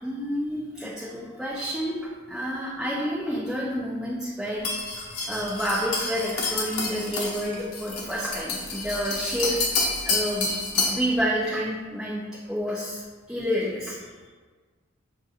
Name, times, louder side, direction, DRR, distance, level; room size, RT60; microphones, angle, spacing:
voice 1, 0.0-2.0 2.3-4.7 5.3-9.7 10.0-12.2 12.5-13.0 13.3-14.0, equal, ahead, -8 dB, 0.5 m, -29 dB
sound 1, 4.6-11.1, left 3 dB, 90° left, 0.9 m, -29 dB
6.4 x 2.7 x 2.4 m, 1.4 s
head